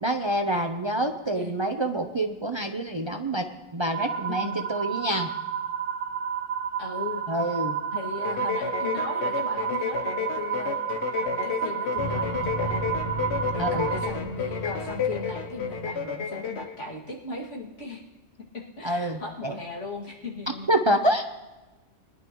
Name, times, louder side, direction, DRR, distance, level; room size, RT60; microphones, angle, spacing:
voice 1, 0.0-3.5 3.7-5.3 7.3-7.8 13.6-13.9 18.8-19.6 20.5-21.2, right 1 dB, 30° right, 5 dB, 0.6 m, -27 dB
sound 1, 3.9-14.1, right 7 dB, 50° right, 1.1 m, -31 dB
voice 2, 4.3-4.7 6.8-7.2 7.9-10.8 11.1-12.8 13.5-18.0 18.4-20.7, left 2 dB, 80° left, -3 dB, 2.6 m, -37 dB
sound 2, 8.2-16.8, left 7 dB, 65° left, 1.1 m, -31 dB
sound 3, 12.0-16.0, right 1 dB, 35° left, 2.4 m, -35 dB
21.5 x 11.0 x 3.0 m, 1.1 s
omnidirectional pair, 1.2 m